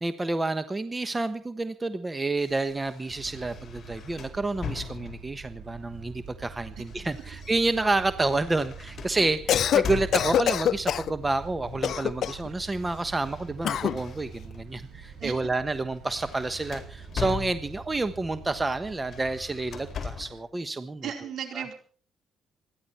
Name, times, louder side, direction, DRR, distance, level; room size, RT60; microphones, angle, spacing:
voice 1, 0.0-21.1 21.6-21.7, right 2 dB, 20° right, 11 dB, 1.2 m, -29 dB
sound 1, 2.4-5.5 6.4-10.6 11.6-12.0 12.3-14.6 15.1-15.3 15.7-18.0 19.0-20.5, left 7 dB, 50° left, 4.3 m, -40 dB
sound 2, 3.1-20.0, right 6 dB, 90° right, 5.7 m, -45 dB
Cough, 9.3-9.9 10.1-11.1 11.8-12.5 13.6-14.0, left 10 dB, 65° left, 0.7 m, -24 dB
voice 2, 21.0-21.7, right 8 dB, 70° right, 5 dB, 4.3 m, -34 dB
27.0 x 11.0 x 4.4 m, 0.44 s
cardioid pair, 90°, 0 cm